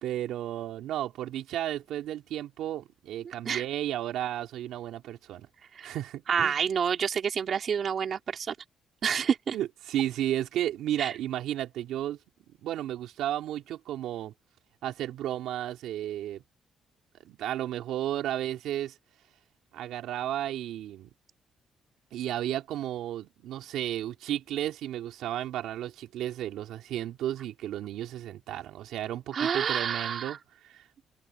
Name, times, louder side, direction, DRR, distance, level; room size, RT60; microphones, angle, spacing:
voice 1, 0.0-5.5 5.8-6.6 9.5-12.2 12.6-14.3 14.8-16.4 17.2-18.9 19.7-21.1 22.1-30.4 30.6-30.8, right 12 dB, 85° right, 3.0 m, -33 dB
voice 2, 6.3-8.5 9.0-9.6 11.0-11.1 29.3-30.4, right 7 dB, 55° right, 3.2 m, -28 dB
cardioid pair, 90°, 0 cm